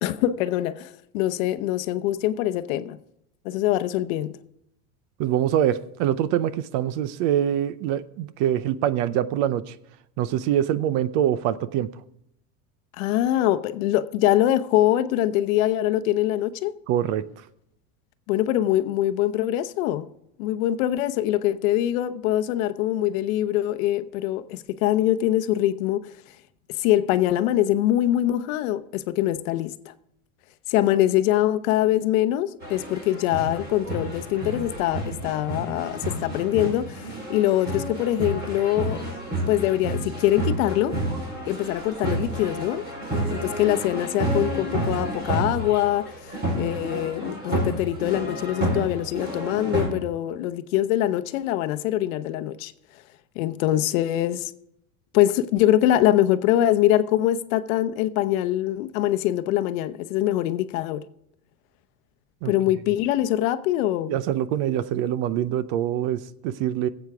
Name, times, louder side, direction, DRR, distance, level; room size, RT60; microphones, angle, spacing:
voice 1, 0.0-3.0 3.4-4.4 13.0-16.7 18.3-20.1 20.4-26.1 26.8-29.9 30.7-39.0 39.5-41.0 41.5-42.8 43.3-46.1 46.5-52.7 53.4-54.5 55.1-61.0 62.4-64.2, left 13 dB, 65° left, 0.8 m, -23 dB
voice 2, 5.2-9.8 10.2-11.9 16.9-17.2 62.4-62.5 64.1-66.9, right 11 dB, 50° right, 0.6 m, -24 dB
sound 1, 32.6-49.9, right 1 dB, 20° right, 4.0 m, -30 dB
21.0 x 8.1 x 3.5 m
supercardioid pair, 150°, 44 cm